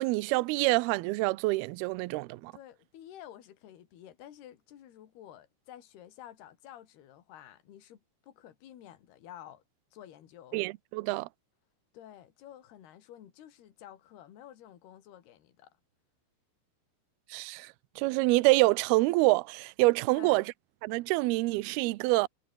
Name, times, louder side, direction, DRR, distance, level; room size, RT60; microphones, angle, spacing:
voice 1, 0.0-2.5 10.5-11.3 17.3-20.4 20.8-22.3, right 22 dB, 80° right, 2.4 m, -26 dB
voice 2, 2.5-9.6 9.9-10.6 11.9-15.8 20.1-20.4, left 11 dB, 70° left, 4.3 m, -51 dB
omnidirectional pair, 5.0 m